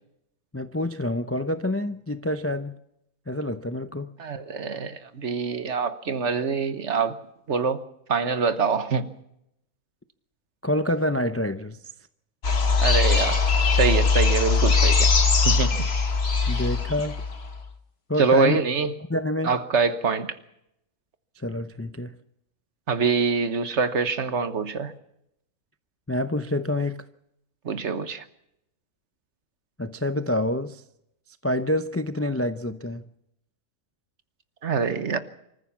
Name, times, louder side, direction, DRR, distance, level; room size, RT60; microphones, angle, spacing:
voice 1, 0.5-2.8 3.3-4.1 10.6-11.8 16.5-17.2 18.1-18.6 19.1-19.5 21.4-22.2 26.1-27.0 29.8-30.8 31.4-33.0, left 1 dB, 20° left, 0.4 m, -27 dB
voice 2, 4.2-7.2 7.5-7.8 8.1-9.1 12.8-15.1 15.4-15.9 18.2-18.9 19.4-20.4 22.9-24.9 27.6-28.2 34.6-35.2, right 5 dB, 60° right, 1.5 m, -25 dB
sound 1, 12.4-17.6, left 4 dB, 50° left, 1.7 m, -21 dB
26.0 x 14.5 x 7.3 m
omnidirectional pair, 1.4 m